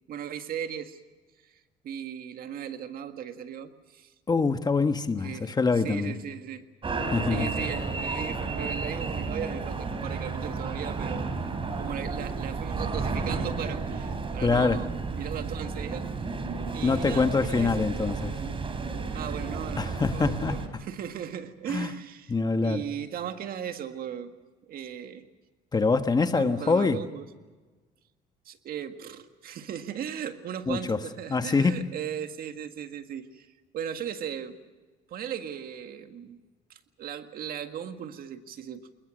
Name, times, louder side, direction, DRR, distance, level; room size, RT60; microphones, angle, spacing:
voice 1, 0.1-1.0 1.4-4.1 5.2-5.5 5.8-6.7 7.3-11.3 11.8-16.1 16.4-16.5 16.7-18.0 19.1-22.3 22.6-24.3 24.7-25.3 26.3-27.3 28.5-34.6 35.1-36.4 36.7-38.9, right 9 dB, 60° right, 1.8 m, -37 dB
voice 2, 4.3-6.1 7.1-7.5 14.4-14.8 16.8-18.4 19.8-20.6 21.7-21.9 22.3-22.8 25.7-27.0 30.7-31.0 31.3-31.8, left 4 dB, 25° left, 1.3 m, -25 dB
sound 1, 6.8-20.7, right 4 dB, 30° right, 3.7 m, -32 dB
28.0 x 21.0 x 6.3 m
cardioid pair, 110°, 17 cm